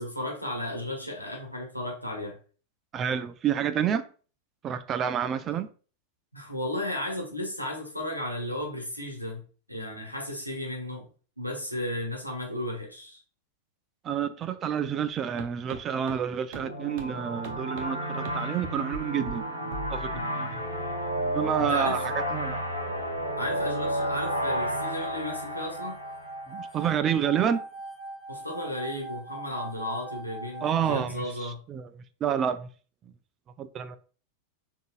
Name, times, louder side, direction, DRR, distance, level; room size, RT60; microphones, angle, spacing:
voice 1, 0.0-2.4 5.5-5.6 6.3-9.4 9.7-11.1 11.4-13.2 20.1-20.6 21.6-22.0 23.4-26.0 28.3-31.6, left 1 dB, 90° left, 1.1 m, -34 dB
voice 2, 2.9-4.0 4.6-5.7 14.0-20.6 21.2-22.6 26.5-27.6 30.6-32.7 33.6-34.0, right 8 dB, 30° right, 0.3 m, -29 dB
sound 1, 15.4-15.5 15.7-15.8 16.1-16.2 16.5-16.6 17.0-17.1 17.4-17.8 18.2-18.3 18.6-19.0 19.3-19.4 19.7-20.2, right 1 dB, 45° right, 0.7 m, -38 dB
sound 2, 16.5-26.9, equal, 85° right, 0.9 m, -32 dB
sound 3, 24.0-31.0, right 2 dB, ahead, 1.4 m, -41 dB
5.2 x 2.6 x 2.4 m
figure-of-eight pair, 90°, 0 cm